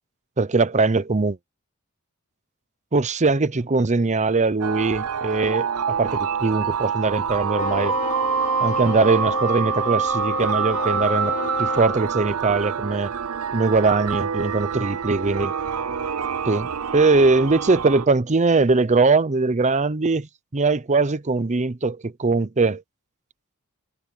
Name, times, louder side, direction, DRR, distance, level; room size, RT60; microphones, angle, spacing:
voice 1, 0.4-1.4 2.9-8.0 8.6-13.1 13.5-15.5 16.5-22.8, right 3 dB, 30° right, 0.7 m, -21 dB
sound 1, 4.6-18.1, right 7 dB, 75° right, 0.6 m, -26 dB
Wind instrument woodwind instrument, 7.5-12.0, left 3 dB, 40° left, 5.7 m, -29 dB
head